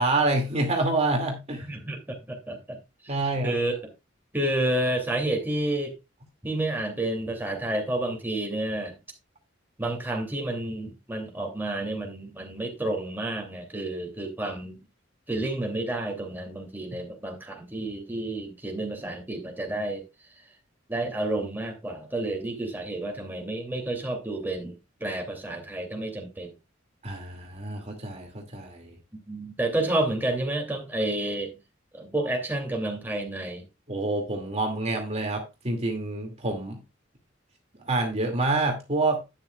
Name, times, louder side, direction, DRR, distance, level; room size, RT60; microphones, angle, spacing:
voice 1, 0.0-1.7 3.1-3.6 27.0-29.0 33.9-36.8 37.9-39.2, right 2 dB, 35° right, 2.4 m, -27 dB
voice 2, 1.6-2.8 3.0-3.2 3.4-3.8 4.3-6.0 6.4-9.0 9.8-14.8 15.3-20.0 20.9-26.5 29.3-31.5 31.9-33.7, right 1 dB, 10° right, 2.8 m, -30 dB
12.0 x 9.2 x 2.4 m
head